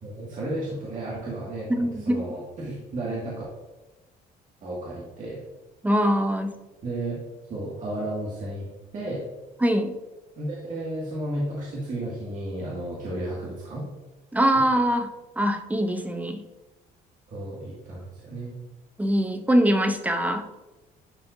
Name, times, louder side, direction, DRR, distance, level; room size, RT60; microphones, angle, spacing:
voice 1, 0.0-3.4 4.6-5.4 6.8-7.1 7.5-8.7 8.9-9.2 10.4-13.8 17.3-18.6, right 1 dB, 50° right, -6 dB, 2.0 m, -33 dB
voice 2, 1.7-2.2 5.8-6.5 9.6-9.9 14.3-16.4 19.0-20.5, equal, 10° right, 7 dB, 0.7 m, -23 dB
11.0 x 4.4 x 2.6 m, 1.1 s
cardioid pair, 110°, 17 cm